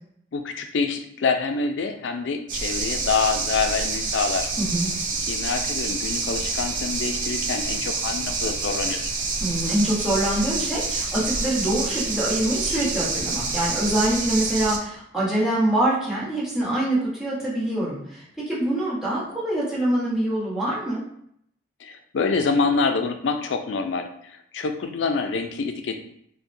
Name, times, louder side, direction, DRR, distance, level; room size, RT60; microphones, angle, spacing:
voice 1, 0.3-4.5 5.3-9.1 21.8-26.0, left 4 dB, 80° left, 6 dB, 0.4 m, -26 dB
sound 1, 2.5-14.8, right 3 dB, 45° right, 0.5 m, -27 dB
voice 2, 4.6-4.9 9.4-21.0, right 1 dB, 5° right, -8 dB, 1.1 m, -25 dB
3.9 x 2.1 x 2.6 m, 0.70 s
head